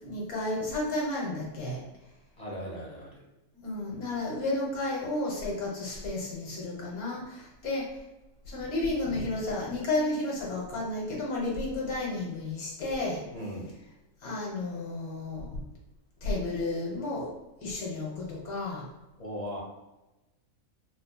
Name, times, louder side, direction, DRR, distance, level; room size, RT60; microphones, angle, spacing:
voice 1, 0.0-1.8 3.5-7.9 8.4-13.2 14.2-15.6 16.2-17.3 17.6-18.8, left 2 dB, 80° left, -3 dB, 1.5 m, -32 dB
voice 2, 2.4-3.2 13.3-13.7 19.2-19.6, equal, 35° left, -4 dB, 0.7 m, -38 dB
4.0 x 2.8 x 2.3 m, 1.0 s
omnidirectional pair, 1.5 m